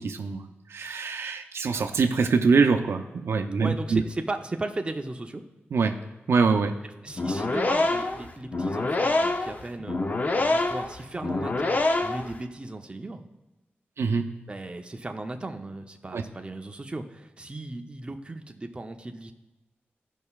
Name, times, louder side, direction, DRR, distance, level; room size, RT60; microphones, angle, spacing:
voice 1, 0.0-4.0 5.7-6.0 6.3-6.7 14.0-14.4 16.1-16.2, right 4 dB, 75° right, 5 dB, 0.6 m, -24 dB
voice 2, 3.6-5.4 7.0-13.3 14.5-19.3, right 2 dB, 25° right, 4 dB, 0.6 m, -36 dB
sound 1, 7.1-12.4, left 2 dB, 40° left, 0.6 m, -26 dB
16.0 x 5.4 x 2.4 m, 1.1 s
wide cardioid pair, 90°, 4 cm